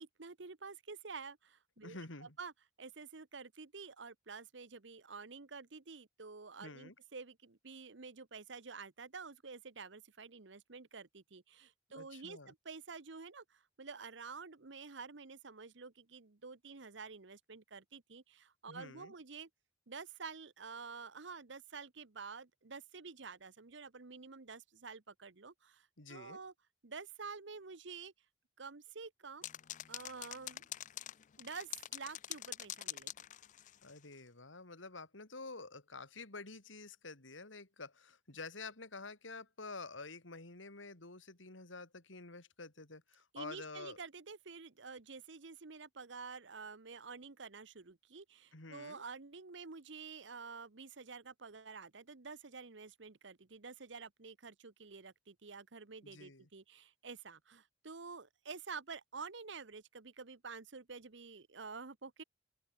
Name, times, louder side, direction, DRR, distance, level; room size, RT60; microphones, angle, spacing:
voice 1, 0.0-2.5 2.8-19.5 19.9-26.5 26.8-28.1 28.6-29.5 29.9-30.7 31.4-33.1 43.3-62.2, right 5 dB, 65° right, 1.1 m, -49 dB
voice 2, 1.8-2.4 6.6-6.9 11.9-12.5 18.7-19.1 26.0-26.4 33.8-44.0 48.5-49.0 56.0-56.5, left 3 dB, 80° left, 3.3 m, -49 dB
sound 1, 29.4-34.0, left 13 dB, 40° left, 0.4 m, -45 dB
open air
head